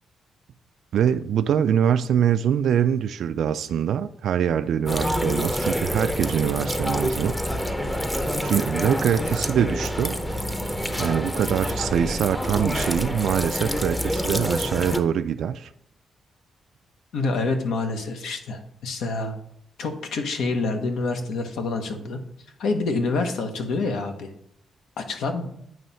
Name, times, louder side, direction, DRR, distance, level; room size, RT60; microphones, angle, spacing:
voice 1, 0.9-7.4 8.4-10.2 10.8-15.7, right 8 dB, 75° right, 10 dB, 0.3 m, -24 dB
sound 1, 4.9-15.0, equal, 10° left, 0.6 m, -27 dB
voice 2, 17.1-19.3 19.8-22.2 22.6-24.3 25.0-25.5, left 3 dB, 85° left, 5 dB, 1.1 m, -27 dB
9.0 x 3.1 x 5.5 m, 0.73 s
cardioid pair, 120°, 0 cm